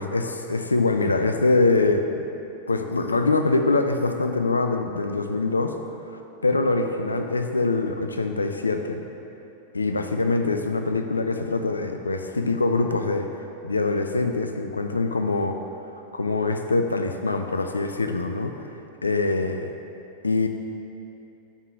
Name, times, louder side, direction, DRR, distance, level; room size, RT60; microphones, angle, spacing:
voice 1, 0.0-2.2 2.7-5.7 6.4-9.0 9.7-13.3 13.6-15.6 16.1-18.6 19.0-19.7 20.2-20.5, left 3 dB, 80° left, 6 dB, 0.3 m, -24 dB
5.4 x 3.8 x 4.6 m, 2.9 s
figure-of-eight pair, 90°, 0 cm